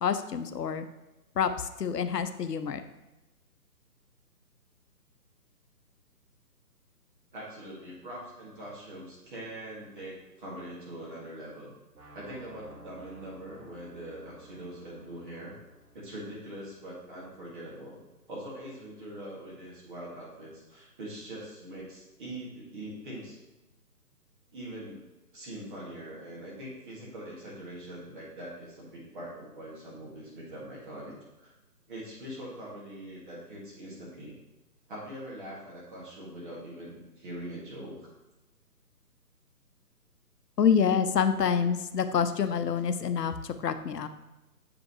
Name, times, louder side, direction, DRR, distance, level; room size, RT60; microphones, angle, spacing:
voice 1, 0.0-0.9 1.4-2.8 40.6-44.1, left 7 dB, 75° left, 10 dB, 0.7 m, -27 dB
voice 2, 7.3-11.7 12.1-15.6 15.9-18.0 18.3-23.4 24.5-25.0 25.3-31.5 31.9-34.4 34.9-38.1, right 1 dB, 30° right, -5 dB, 1.7 m, -42 dB
sound 1, 11.9-17.9, right 1 dB, 60° right, 1.8 m, -54 dB
7.7 x 5.1 x 3.0 m, 1.0 s
figure-of-eight pair, 150°, 49 cm